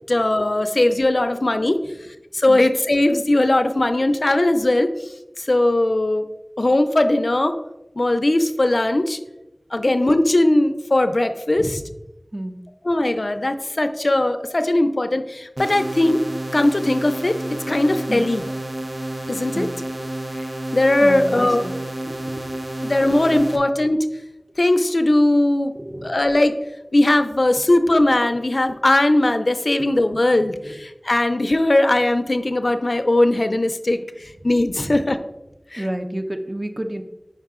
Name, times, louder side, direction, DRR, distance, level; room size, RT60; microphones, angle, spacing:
voice 1, 0.1-1.8 2.3-4.9 5.4-6.3 6.6-7.6 8.0-9.2 9.7-11.8 12.9-16.2 16.5-18.4 19.3-19.7 20.4-20.5 20.7-21.6 22.8-24.1 24.6-25.7 26.0-26.5 26.9-35.2 35.7-35.8, left 1 dB, 65° left, 9 dB, 0.4 m, -19 dB
sound 1, 15.6-23.6, right 1 dB, 70° right, 0.7 m, -30 dB
voice 2, 21.0-21.7 22.0-22.9 25.7-26.2 30.4-30.7 34.8-35.0 35.8-37.0, right 1 dB, 30° right, 5 dB, 0.6 m, -31 dB
5.5 x 4.7 x 3.6 m, 0.95 s
wide cardioid pair, 45°, 0 cm